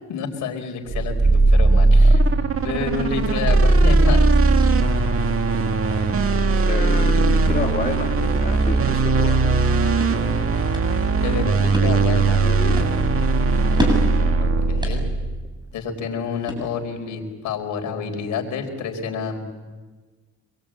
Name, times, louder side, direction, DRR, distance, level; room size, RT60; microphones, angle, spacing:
voice 1, 0.1-2.2 2.6-4.3 11.2-12.4 14.4-15.1 15.7-19.4, left 6 dB, 80° left, 2 dB, 4.4 m, -28 dB
sound 1, 0.9-15.5, right 3 dB, 50° right, 2.0 m, -18 dB
voice 2, 6.7-9.7 12.4-12.8, left 5 dB, 30° left, 2 dB, 2.1 m, -29 dB
sound 2, 10.1-17.1, equal, 15° right, 7.8 m, -32 dB
26.0 x 22.0 x 8.8 m, 1.3 s
cardioid pair, 90°, 30 cm